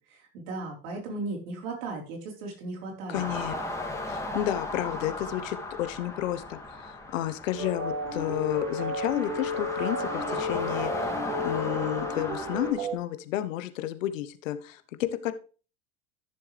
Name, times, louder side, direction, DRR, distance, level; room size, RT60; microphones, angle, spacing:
voice 1, 0.1-3.3, right 3 dB, 75° right, 0 dB, 4.3 m, -36 dB
voice 2, 3.1-3.5 4.1-15.3, left 12 dB, 80° left, 11 dB, 1.1 m, -31 dB
sound 1, 3.1-12.7, left 2 dB, 5° left, 2.5 m, -36 dB
sound 2, 7.6-13.0, left 1 dB, 50° right, 4.6 m, -32 dB
13.5 x 7.0 x 3.4 m, 0.37 s
hypercardioid pair, 90°, 39 cm